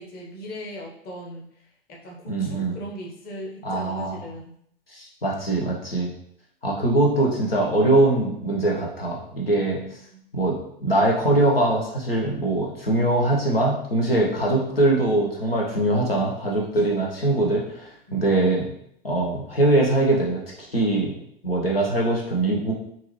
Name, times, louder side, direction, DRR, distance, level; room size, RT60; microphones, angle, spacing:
voice 1, 0.0-1.5 1.9-4.5 9.6-10.2 14.0-14.7 16.9-17.0 18.1-18.4, equal, 35° left, -1 dB, 1.1 m, -39 dB
voice 2, 2.3-2.7 3.6-4.2 4.9-6.1 6.6-9.8 10.3-10.5 10.8-18.7 19.0-21.1 21.4-22.7, right 2 dB, 85° left, -2 dB, 1.0 m, -22 dB
5.8 x 2.7 x 3.2 m, 0.69 s
figure-of-eight pair, 85°, 29 cm